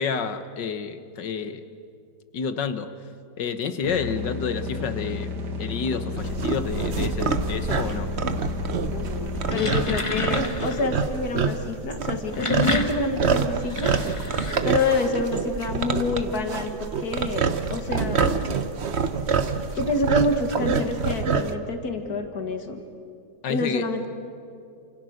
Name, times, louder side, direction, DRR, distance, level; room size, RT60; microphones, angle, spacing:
voice 1, 0.0-1.6 2.3-2.9 3.4-5.3 5.6-8.1 23.4-23.9, left 6 dB, 90° left, 10 dB, 1.9 m, -29 dB
sound 1, 3.8-9.8, left 3 dB, 75° right, 2.4 m, -32 dB
sound 2, 6.2-21.6, right 5 dB, 45° right, 1.1 m, -27 dB
voice 2, 8.9-13.9 14.6-18.6 19.7-22.8 23.5-24.1, left 3 dB, 60° left, 5 dB, 2.4 m, -27 dB
sound 3, 9.3-10.9 12.1-15.1, left 2 dB, 20° left, 1.4 m, -29 dB
29.0 x 27.5 x 6.5 m, 2.5 s
omnidirectional pair, 1.8 m